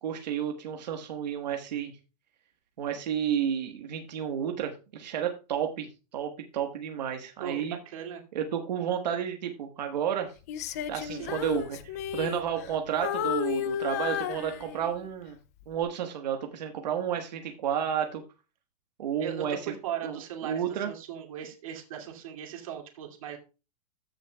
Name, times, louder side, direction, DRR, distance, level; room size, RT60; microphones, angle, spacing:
voice 1, 0.0-1.9 2.8-7.8 8.3-10.3 10.9-11.8 12.1-15.4 15.7-18.2 19.0-19.6 20.0-20.9, right 9 dB, 90° right, 4 dB, 1.5 m, -31 dB
voice 2, 7.4-8.2 11.1-11.4 19.2-23.4, right 9 dB, 55° right, 2 dB, 2.5 m, -38 dB
Female singing, 10.5-12.8 13.0-15.1 15.6-15.8, left 10 dB, 25° left, 0.3 m, -33 dB
14.5 x 6.4 x 2.3 m, 0.32 s
supercardioid pair, 180°, 21 cm